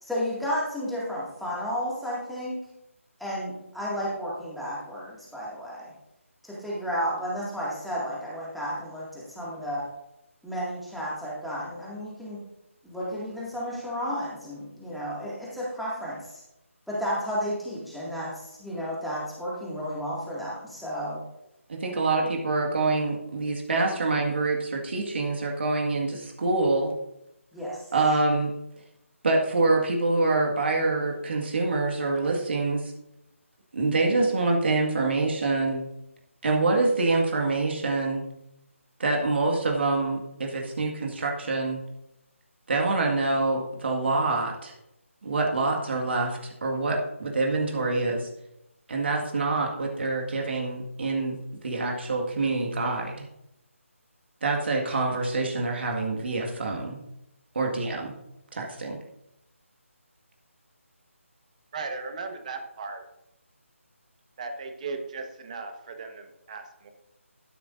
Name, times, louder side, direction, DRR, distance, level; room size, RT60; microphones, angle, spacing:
voice 1, 0.0-2.6 3.2-5.9 6.4-9.9 10.4-12.4 12.8-16.4 16.9-21.2 27.5-27.9, equal, ahead, -7 dB, 2.1 m, -32 dB
voice 2, 21.7-26.9 27.9-28.5 29.2-32.9 33.7-35.8 36.4-38.2 39.0-41.8 42.7-44.7 45.2-48.3 48.9-51.4 51.6-53.2 54.4-57.0 57.5-58.1 58.5-59.0, right 3 dB, 50° right, 1 dB, 1.8 m, -26 dB
voice 3, 61.7-63.0 64.4-66.9, right 4 dB, 30° right, 6 dB, 1.2 m, -37 dB
12.5 x 11.0 x 2.6 m, 0.85 s
figure-of-eight pair, 160°, 8 cm